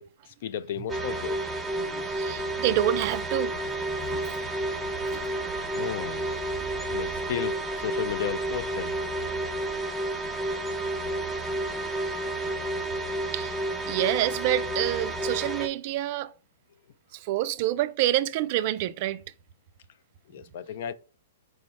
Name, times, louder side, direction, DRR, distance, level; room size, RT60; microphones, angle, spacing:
voice 1, 0.0-1.4 5.3-5.4 5.7-6.3 6.9-9.0 12.4-12.5 13.2-13.3 20.3-20.9, left 9 dB, 60° left, 0.3 m, -34 dB
sound 1, 0.9-15.7, right 2 dB, 5° right, 0.6 m, -31 dB
voice 2, 1.8-3.5 4.1-4.4 5.1-5.2 13.3-16.3 17.1-19.2, right 13 dB, 45° right, 0.3 m, -28 dB
4.6 x 2.1 x 4.1 m
hypercardioid pair, 135°, 0 cm